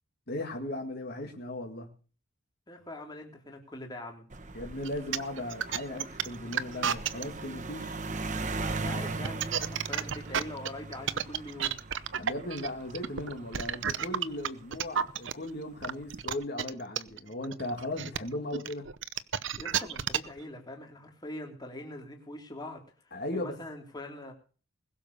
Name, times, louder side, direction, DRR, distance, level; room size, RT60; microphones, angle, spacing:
voice 1, 0.3-1.9 4.5-8.0 12.2-18.9 23.1-23.6, left 1 dB, 50° left, 2.1 m, -37 dB
voice 2, 2.7-4.2 8.8-11.8 19.6-24.3, left 1 dB, 20° left, 3.3 m, -43 dB
sound 1, 4.3-15.0 15.8-16.2, right 3 dB, 35° right, 1.2 m, -39 dB
sound 2, 4.7-7.2 9.1-15.3 15.8-20.4, right 8 dB, 65° right, 0.8 m, -31 dB
20.5 x 6.9 x 6.7 m
head